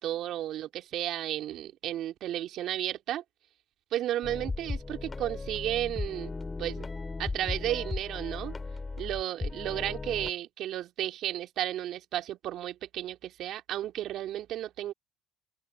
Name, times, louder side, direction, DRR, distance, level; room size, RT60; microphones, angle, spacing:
voice 1, 0.0-3.2 3.9-6.9 7.2-8.5 9.0-14.9, right 12 dB, 65° right, 2.9 m, -33 dB
sound 1, 4.2-10.3, left 3 dB, 25° left, 3.3 m, -36 dB
open air
hypercardioid pair, 60°, 0 cm